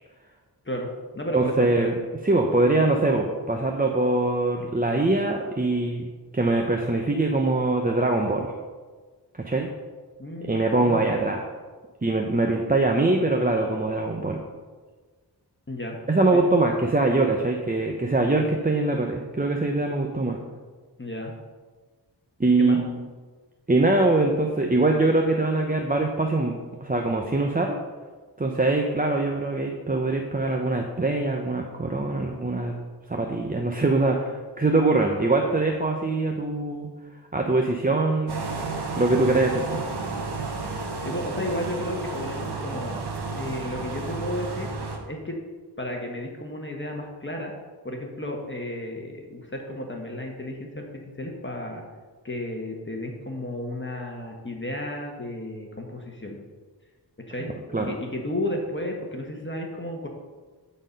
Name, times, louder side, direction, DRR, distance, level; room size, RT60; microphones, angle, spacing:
voice 1, 0.6-1.9 10.2-11.1 15.7-16.0 16.3-16.5 21.0-21.3 22.6-22.8 41.0-43.0 43.3-45.4 45.8-47.5 47.8-51.8 52.2-56.4 57.3-57.5 57.8-60.1, left 1 dB, 30° left, 1 dB, 1.4 m, -33 dB
voice 2, 1.3-1.9 2.2-6.1 6.3-8.5 9.3-9.7 10.5-11.4 12.0-14.4 16.1-20.4 22.4-23.0 23.7-27.8 28.4-32.7 33.1-36.9 37.3-38.4 39.0-39.8 57.7-57.9, right 2 dB, 20° right, 2 dB, 0.8 m, -23 dB
sound 1, 38.3-45.0, right 3 dB, 65° right, 1.3 m, -32 dB
12.0 x 4.3 x 5.3 m, 1.4 s
wide cardioid pair, 60°, 42 cm